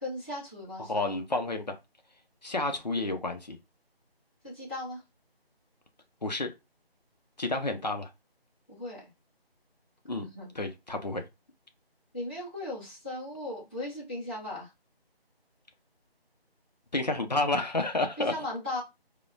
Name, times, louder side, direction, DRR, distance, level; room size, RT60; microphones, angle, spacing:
voice 1, 0.0-1.2 4.4-5.0 8.7-9.0 10.2-10.5 12.1-14.7 18.2-18.8, left 1 dB, 10° left, 1.0 m, -37 dB
voice 2, 0.9-1.8 2.4-3.6 6.2-6.5 7.4-8.1 10.0-10.3 10.5-11.2 16.9-18.3, left 2 dB, 45° left, 0.6 m, -30 dB
4.7 x 2.1 x 2.4 m
figure-of-eight pair, 165°, 31 cm